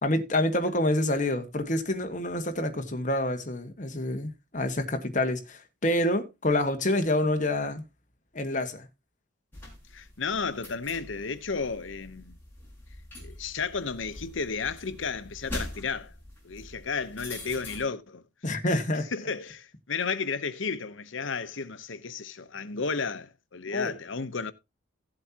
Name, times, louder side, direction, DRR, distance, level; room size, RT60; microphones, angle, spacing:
voice 1, 0.0-7.8 8.3-8.9 18.4-19.1 23.7-23.9, left 1 dB, 40° left, 1.5 m, -27 dB
sound 1, 9.5-17.8, left 1 dB, 10° left, 4.8 m, -43 dB
voice 2, 9.9-12.4 13.2-16.1 16.4-18.2 18.7-18.8 19.1-24.5, left 5 dB, 75° left, 0.9 m, -33 dB
16.0 x 7.8 x 2.9 m
head